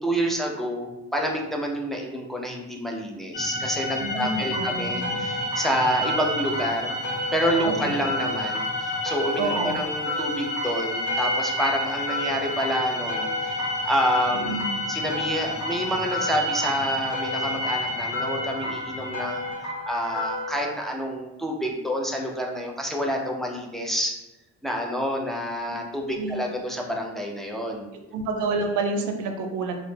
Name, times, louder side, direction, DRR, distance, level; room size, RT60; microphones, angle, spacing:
voice 1, 0.0-19.4 19.8-24.1 24.6-27.9, equal, ahead, 0 dB, 0.3 m, -28 dB
sound 1, 3.3-19.5, left 1 dB, 25° left, 0.9 m, -30 dB
voice 2, 4.0-5.2 7.6-7.9 9.4-9.9 14.4-14.8 26.2-26.4 28.1-29.7, right 3 dB, 85° right, 4 dB, 0.5 m, -29 dB
sound 2, 4.5-20.7, left 1 dB, 60° left, 0.9 m, -33 dB
2.0 x 2.0 x 3.1 m, 0.95 s
cardioid pair, 90°, 30 cm